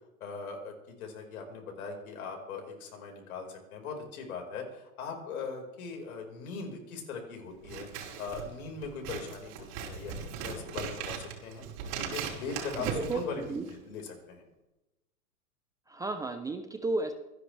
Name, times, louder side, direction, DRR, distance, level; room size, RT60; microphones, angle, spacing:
voice 1, 0.2-7.9 8.2-11.7 12.0-14.4, left 4 dB, 70° left, 2 dB, 5.1 m, -40 dB
Scissors, 7.6-13.9, right 7 dB, 50° right, 5.1 m, -39 dB
voice 2, 12.8-13.6 15.9-17.1, right 2 dB, 10° right, 7 dB, 0.6 m, -33 dB
26.0 x 11.0 x 3.4 m, 1.0 s
hypercardioid pair, 125°, 45 cm